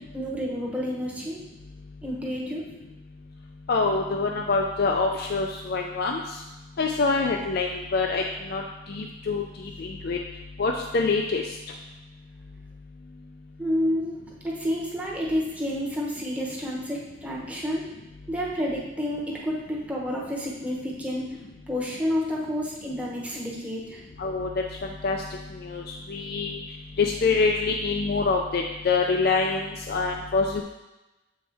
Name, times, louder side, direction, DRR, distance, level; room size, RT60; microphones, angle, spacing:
voice 1, 0.1-1.4 2.0-2.6 13.6-14.2 14.4-17.8 18.3-21.3 21.7-24.0, equal, 5° right, -4 dB, 1.0 m, -29 dB
voice 2, 3.7-6.2 6.8-8.2 8.5-8.6 8.9-9.4 9.8-10.2 10.6-11.4 24.2-24.5 25.0-25.2 25.6-26.6 27.0-30.6, left 4 dB, 55° left, 1 dB, 0.4 m, -25 dB
7.4 x 4.4 x 3.4 m, 1.0 s
head